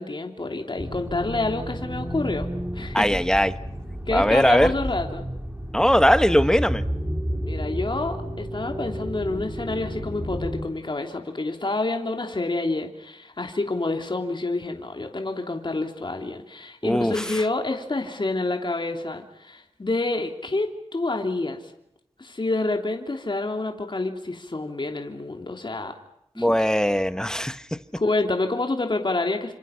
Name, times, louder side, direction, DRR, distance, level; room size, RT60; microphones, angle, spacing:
voice 1, 0.0-2.5 2.7-3.2 4.1-5.2 7.4-21.6 22.2-25.9 26.4-26.6 28.0-29.5, left 2 dB, 45° left, 4 dB, 3.1 m, -28 dB
sound 1, 0.8-10.6, equal, 15° right, 4.2 m, -31 dB
voice 2, 2.9-3.5 4.1-4.7 5.7-6.8 16.8-17.2 26.4-27.6, equal, 5° left, 12 dB, 1.3 m, -20 dB
30.0 x 27.0 x 5.8 m, 0.79 s
wide cardioid pair, 80°, 11 cm